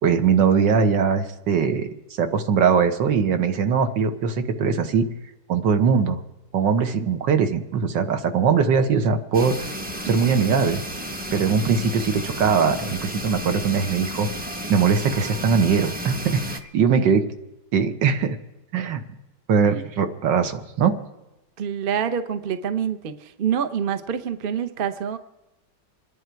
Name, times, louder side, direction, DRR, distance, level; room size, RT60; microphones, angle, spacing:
voice 1, 0.0-1.9 2.2-5.1 5.5-6.2 6.5-9.7 10.1-10.8 11.3-14.3 14.7-17.2 17.7-18.4 18.7-19.0 19.5-21.0, right 6 dB, 75° right, 8 dB, 1.8 m, -21 dB
sound 1, 9.3-16.6, equal, 10° right, 0.6 m, -32 dB
voice 2, 21.6-23.1 23.4-25.2, right 8 dB, 45° right, 10 dB, 0.7 m, -26 dB
26.5 x 10.5 x 4.6 m, 0.98 s
omnidirectional pair, 2.0 m